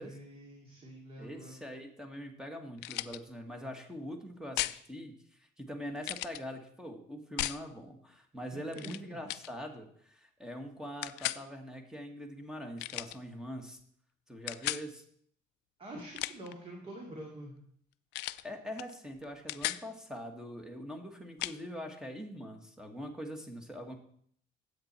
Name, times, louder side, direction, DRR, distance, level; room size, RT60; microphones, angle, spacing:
voice 1, 0.0-1.6 8.5-8.9 15.8-17.6, right 1 dB, 35° right, 0 dB, 2.3 m, -46 dB
voice 2, 1.2-13.8 14.3-15.0 18.4-24.0, equal, 5° right, 4 dB, 1.6 m, -43 dB
sound 1, 2.8-3.2 4.6-4.8 6.0-6.4 7.4-7.6 8.7-9.0 9.3-9.5 11.0-11.4 12.8-13.2 14.5-14.8 16.0-16.5 18.1-18.4 18.8-18.9 19.2-19.8 21.4-21.6, left 18 dB, 90° left, 0.4 m, -36 dB
10.5 x 8.1 x 4.4 m, 0.63 s
cardioid pair, 110°, 17 cm